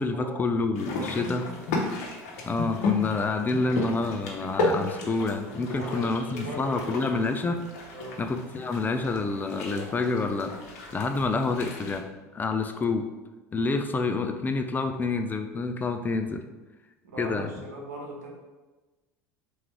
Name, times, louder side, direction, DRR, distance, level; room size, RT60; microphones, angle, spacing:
voice 1, 0.0-1.4 2.5-7.6 8.2-10.5 10.9-12.1 12.3-13.1 13.5-16.4 17.2-17.5, left 3 dB, 20° left, 7 dB, 0.4 m, -28 dB
sound 1, 0.7-12.0, left 3 dB, 70° left, 0.9 m, -34 dB
voice 2, 0.8-1.7 5.6-7.1 7.9-8.2 17.0-18.3, right 1 dB, 80° right, -2 dB, 1.3 m, -39 dB
3.7 x 3.1 x 4.6 m, 1.2 s
hypercardioid pair, 75°, 9 cm